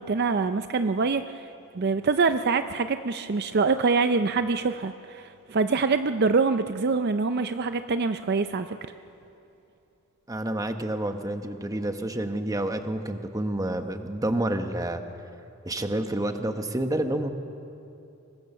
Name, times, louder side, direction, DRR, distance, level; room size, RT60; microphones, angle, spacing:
voice 1, 0.0-1.5 1.7-8.8, right 4 dB, 50° right, 9 dB, 0.5 m, -25 dB
voice 2, 10.3-15.0 15.6-17.3, right 1 dB, 15° right, 7 dB, 1.1 m, -29 dB
24.5 x 21.0 x 6.7 m, 2.8 s
head